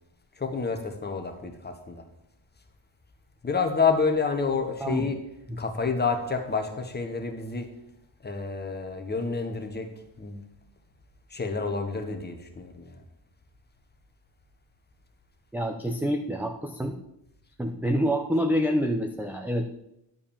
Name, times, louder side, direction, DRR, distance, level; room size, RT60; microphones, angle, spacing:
voice 1, 0.4-2.0 3.4-5.2 5.6-7.7 8.2-9.9 10.2-10.4 11.3-13.0, left 4 dB, 20° left, 5 dB, 1.2 m, -28 dB
voice 2, 15.5-17.0 17.6-19.7, equal, 5° right, 5 dB, 0.5 m, -27 dB
11.0 x 4.9 x 7.1 m, 0.84 s
cardioid pair, 130°, 45 cm